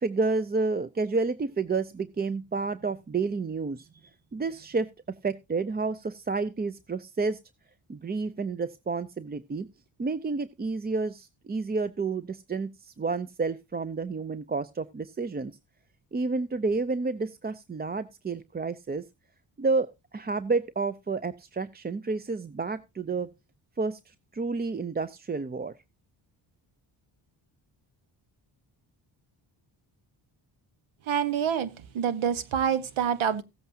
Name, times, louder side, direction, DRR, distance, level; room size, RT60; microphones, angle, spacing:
voice 1, 0.0-4.9 5.2-7.4 7.9-9.7 10.0-15.5 16.1-19.0 19.6-19.9 20.1-23.3 23.8-25.7, right 4 dB, 20° right, 0.5 m, -30 dB
voice 2, 31.1-31.7 31.9-33.4, right 8 dB, 80° right, 1.2 m, -26 dB
16.0 x 8.0 x 2.7 m
cardioid pair, 75°, 47 cm